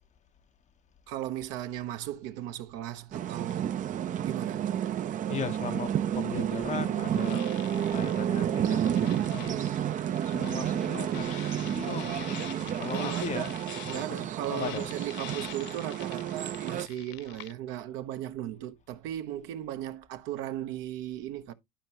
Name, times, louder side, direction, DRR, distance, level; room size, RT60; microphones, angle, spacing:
voice 1, 1.1-3.8 4.2-4.7 12.9-13.5 13.9-21.5, right 12 dB, 65° right, 1.1 m, -36 dB
sound 1, 3.1-16.9, right 10 dB, 40° right, 0.7 m, -31 dB
voice 2, 5.3-9.9 10.2-13.6 13.8-14.9, left 8 dB, 35° left, 0.9 m, -39 dB
sound 2, 7.0-17.5, left 16 dB, 60° left, 0.5 m, -46 dB
11.5 x 4.4 x 3.0 m
hypercardioid pair, 80°, 21 cm